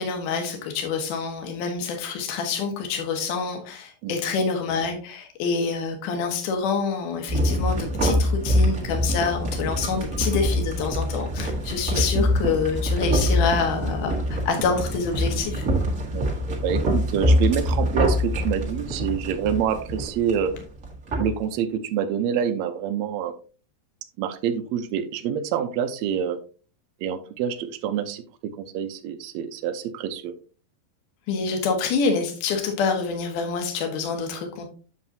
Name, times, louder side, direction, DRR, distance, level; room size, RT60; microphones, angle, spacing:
voice 1, 0.0-15.6 31.3-34.7, left 5 dB, 65° left, 4 dB, 2.8 m, -27 dB
sound 1, 7.3-21.3, equal, 35° right, 1.3 m, -24 dB
voice 2, 16.1-20.5 21.2-23.3 24.2-26.4 27.0-30.3, right 8 dB, 80° right, 7 dB, 1.6 m, -27 dB
7.7 x 7.4 x 2.7 m, 0.37 s
omnidirectional pair, 4.1 m